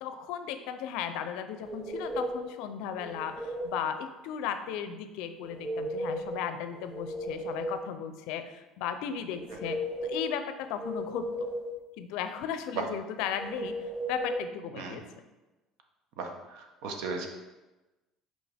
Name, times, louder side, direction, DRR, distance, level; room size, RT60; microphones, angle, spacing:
voice 1, 0.0-11.2 12.0-15.0, left 8 dB, 80° left, 9 dB, 0.5 m, -36 dB
sound 1, 1.6-2.5 3.0-3.8 5.4-6.4 6.8-7.9 9.3-10.3 10.8-11.8 13.4-14.4, equal, 25° right, 0.6 m, -35 dB
voice 2, 16.2-17.3, right 5 dB, 80° right, 3 dB, 1.0 m, -36 dB
6.1 x 5.0 x 3.5 m, 1.1 s
cardioid pair, 140°, 0 cm